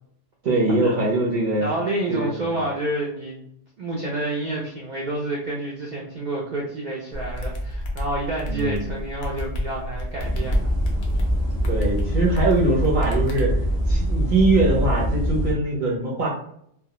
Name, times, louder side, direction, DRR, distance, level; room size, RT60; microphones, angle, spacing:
voice 1, 0.4-1.7 2.1-2.5 8.5-8.9 11.7-13.5 13.9-16.3, right 2 dB, 50° right, -4 dB, 0.7 m, -22 dB
voice 2, 1.6-3.4 3.8-10.7, right 2 dB, 80° right, -3 dB, 0.4 m, -29 dB
sound 1, 7.1-13.4, left 1 dB, 65° left, 0.3 m, -31 dB
sound 2, 10.2-15.5, equal, 15° left, 0.5 m, -24 dB
2.2 x 2.1 x 2.8 m, 0.70 s
omnidirectional pair, 1.3 m